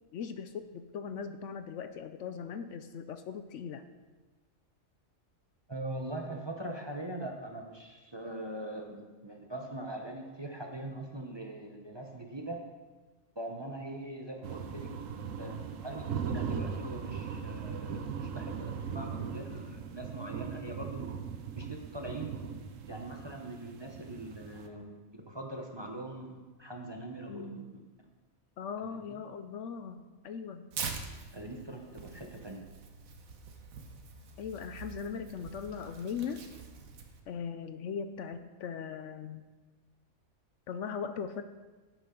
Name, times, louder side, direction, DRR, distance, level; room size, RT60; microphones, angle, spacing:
voice 1, 0.1-3.8 27.3-27.6 28.6-30.6 34.4-36.4 37.3-39.5 40.7-41.4, left 6 dB, 70° left, 10 dB, 0.9 m, -39 dB
voice 2, 5.7-12.6 13.4-14.9 15.4-21.1 21.6-22.4 22.9-25.0 25.3-27.6 29.1-29.2 31.3-32.6, right 1 dB, 25° right, 1 dB, 0.8 m, -42 dB
sound 1, 14.4-24.7, right 6 dB, 70° right, 1.1 m, -39 dB
Tearing, 30.7-37.2, right 5 dB, 90° right, 1.4 m, -44 dB
11.0 x 9.1 x 3.8 m, 1.3 s
omnidirectional pair, 1.4 m